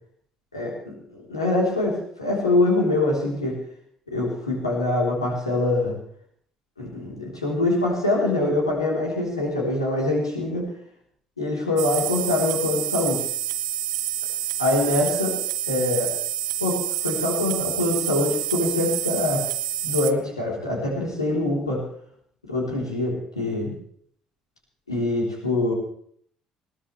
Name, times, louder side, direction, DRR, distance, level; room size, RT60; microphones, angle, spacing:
voice 1, 0.5-3.6 4.1-5.9 6.8-10.7 11.4-13.2 14.6-15.3 15.7-16.1 16.6-19.4 19.8-21.8 22.5-23.7 24.9-25.7, left 2 dB, 85° left, -3 dB, 4.0 m, -24 dB
sound 1, 11.8-20.1, right 12 dB, 75° right, 0.8 m, -28 dB
20.5 x 18.0 x 3.4 m, 0.62 s
figure-of-eight pair, 50°, 3 cm